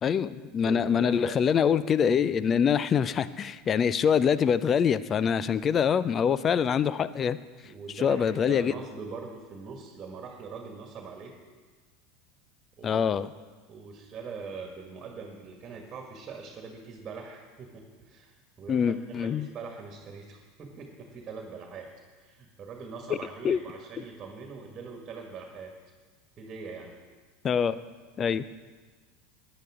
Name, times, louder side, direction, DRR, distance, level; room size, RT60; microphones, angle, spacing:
voice 1, 0.0-7.4 8.0-8.7 12.8-13.3 18.7-19.5 23.4-23.6 27.4-27.8 28.2-28.4, left 7 dB, 35° left, 16 dB, 0.5 m, -24 dB
voice 2, 0.6-1.4 7.7-11.3 12.8-13.1 13.7-21.9 22.2-25.7 26.4-26.9, right 5 dB, 30° right, 2 dB, 1.9 m, -42 dB
17.0 x 10.0 x 3.8 m, 1.4 s
figure-of-eight pair, 80°, 0 cm